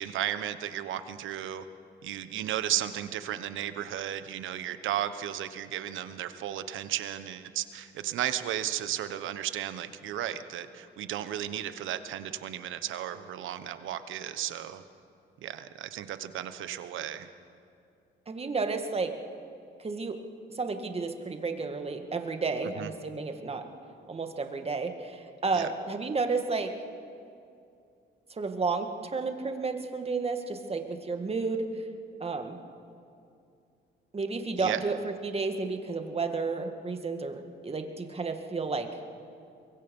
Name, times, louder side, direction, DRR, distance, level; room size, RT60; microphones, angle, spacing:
voice 1, 0.0-1.6 2.0-14.8 15.4-17.3 22.8-22.9 25.5-25.7 34.6-34.8, right 11 dB, 80° right, 11 dB, 1.1 m, -34 dB
voice 2, 18.3-19.1 19.8-20.2 20.5-23.6 24.1-26.7 28.4-31.7 32.2-32.6 34.1-38.9, right 4 dB, 30° right, 6 dB, 2.0 m, -32 dB
24.0 x 22.5 x 5.5 m, 2.5 s
cardioid pair, 90°, 20 cm